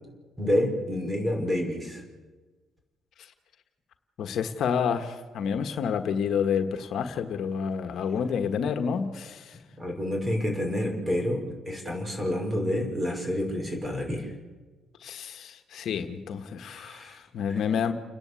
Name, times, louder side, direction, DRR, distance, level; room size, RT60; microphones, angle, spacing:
voice 1, 0.4-2.0 9.8-14.3 16.6-17.2, left 1 dB, 20° right, 2 dB, 5.6 m, -28 dB
voice 2, 4.2-9.6 15.0-17.9, left 7 dB, 70° left, 7 dB, 1.4 m, -29 dB
29.5 x 11.0 x 8.4 m, 1.3 s
cardioid pair, 90°, 0 cm